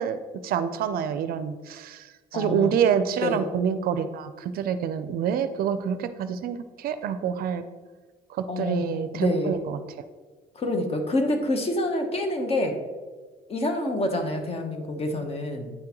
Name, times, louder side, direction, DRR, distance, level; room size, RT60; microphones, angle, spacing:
voice 1, 0.0-7.6 8.3-9.8, right 8 dB, 60° right, 11 dB, 0.4 m, -27 dB
voice 2, 2.3-2.7 3.2-3.4 8.5-9.6 10.5-12.8 13.5-15.7, left 1 dB, 35° left, 5 dB, 0.9 m, -27 dB
9.0 x 3.7 x 2.9 m, 1.3 s
cardioid pair, 110°, 17 cm